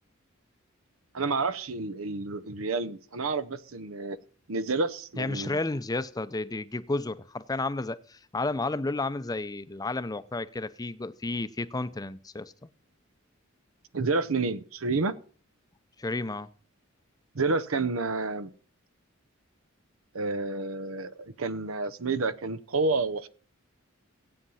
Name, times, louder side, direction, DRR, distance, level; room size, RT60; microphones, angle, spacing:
voice 1, 1.1-4.2 4.5-5.6 13.9-15.1 17.3-18.5 20.1-23.3, right 3 dB, 85° right, 0.9 m, -29 dB
voice 2, 5.2-12.7 16.0-16.5, left 2 dB, 20° left, 0.6 m, -32 dB
15.5 x 8.7 x 5.6 m
head